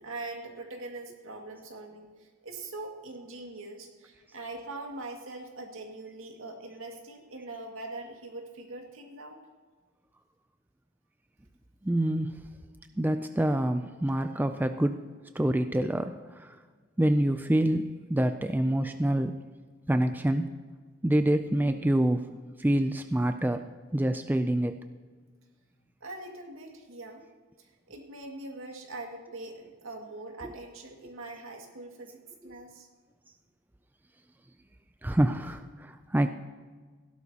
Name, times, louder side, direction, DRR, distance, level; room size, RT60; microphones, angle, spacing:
voice 1, 0.0-9.4 26.0-27.2 27.6-32.9, right 2 dB, 80° right, 2 dB, 2.1 m, -42 dB
voice 2, 11.8-12.3 13.0-15.0 15.4-16.6 17.0-19.3 19.9-20.5 21.0-22.2 22.6-23.6 23.9-24.7 30.4-30.5 32.4-32.6 35.0-36.3, right 1 dB, 10° right, 8 dB, 0.3 m, -26 dB
16.5 x 12.0 x 2.9 m, 1.5 s
head